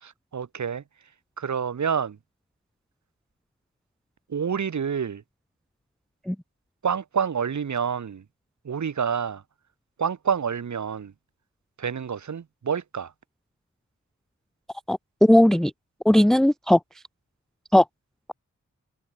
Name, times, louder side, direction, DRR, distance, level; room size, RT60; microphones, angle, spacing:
voice 1, 0.0-0.8 1.4-2.2 4.3-5.2 6.8-8.2 8.6-9.4 10.0-11.1 11.8-13.1, right 7 dB, 70° right, 0.9 m, -28 dB
voice 2, 14.9-15.7 16.1-16.8 17.7-17.8, left 1 dB, ahead, 0.5 m, -17 dB
cardioid pair, 45°, 30 cm